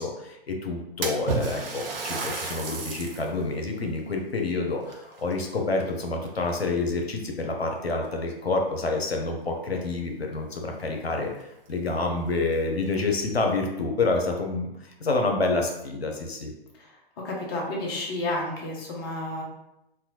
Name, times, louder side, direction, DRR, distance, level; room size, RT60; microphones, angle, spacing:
voice 1, 0.0-16.5, left 3 dB, 85° left, 2 dB, 0.6 m, -28 dB
Splash splatter, 1.0-3.3 3.8-3.9 4.8-5.9 6.2-6.7 7.5-7.6 8.0-8.1 10.3-10.4 10.7-10.8 11.4-11.5 11.9-12.0 12.7-13.3, right 3 dB, 65° right, 0.6 m, -33 dB
voice 2, 17.2-19.4, left 2 dB, 25° left, -2 dB, 0.4 m, -31 dB
2.6 x 2.1 x 2.8 m, 0.87 s
figure-of-eight pair, 120°, 30 cm